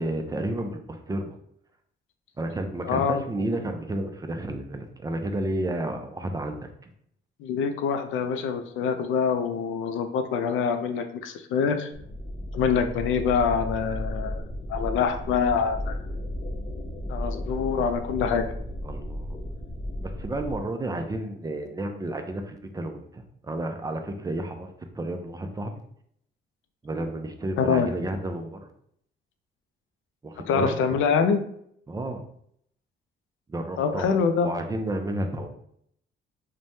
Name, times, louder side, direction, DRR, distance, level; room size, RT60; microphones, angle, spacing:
voice 1, 0.0-1.4 2.4-6.7 18.8-19.3 20.0-25.8 26.8-28.7 30.2-30.7 31.9-32.2 33.5-35.5, right 1 dB, 20° right, 5 dB, 0.4 m, -31 dB
voice 2, 2.8-3.2 7.4-11.9 12.5-14.4 14.7-16.0 17.1-18.4 27.6-27.9 30.5-31.4 33.8-34.5, left 6 dB, 80° left, 7 dB, 0.4 m, -25 dB
sound 1, 11.9-20.6, left 1 dB, 30° left, 0.6 m, -34 dB
3.2 x 2.1 x 2.6 m, 0.69 s
cardioid pair, 90°, 20 cm